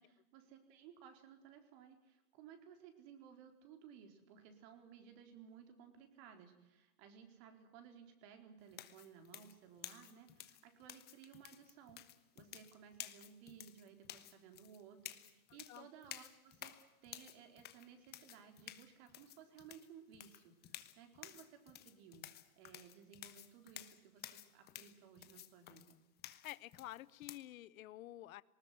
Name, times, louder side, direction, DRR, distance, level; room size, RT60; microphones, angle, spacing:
voice 1, 0.0-12.0 12.3-16.7 17.0-22.2 22.6-26.0, right 8 dB, 45° right, 6 dB, 4.3 m, -59 dB
sound 1, 8.7-27.4, left 12 dB, 20° left, 1.2 m, -53 dB
voice 2, 26.4-28.4, left 15 dB, 65° left, 20 dB, 1.0 m, -50 dB
19.5 x 19.5 x 9.6 m, 0.95 s
hypercardioid pair, 140°, 45 cm